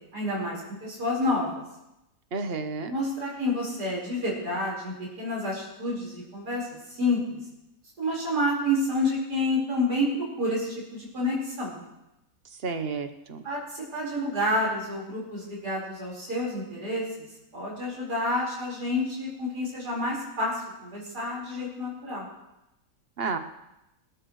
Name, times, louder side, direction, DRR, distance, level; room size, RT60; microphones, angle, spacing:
voice 1, 0.1-1.6 2.9-7.4 8.0-11.8 13.4-17.1 17.5-22.3, left 1 dB, 80° right, -5 dB, 5.4 m, -29 dB
voice 2, 2.3-2.9 12.6-13.4 23.2-23.4, right 4 dB, 40° right, 7 dB, 1.1 m, -31 dB
25.5 x 13.0 x 3.2 m, 0.92 s
omnidirectional pair, 1.7 m